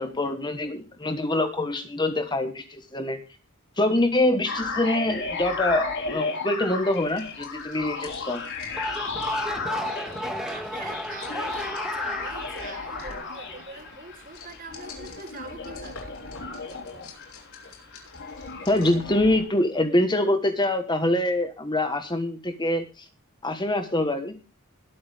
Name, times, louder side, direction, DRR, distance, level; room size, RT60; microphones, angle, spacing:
voice 1, 0.0-3.2 3.8-8.4 18.7-23.1 23.4-24.5, left 1 dB, 20° left, 8 dB, 1.4 m, -25 dB
sound 1, 4.5-19.4, left 4 dB, 55° left, 4.6 m, -34 dB
sound 2, 6.8-19.1, left 4 dB, 80° left, 6.6 m, -49 dB
sound 3, 8.6-14.0, equal, 5° right, 2.3 m, -34 dB
voice 2, 10.2-16.1, right 3 dB, 40° right, 5 dB, 3.9 m, -43 dB
21.0 x 8.8 x 3.5 m, 0.32 s
head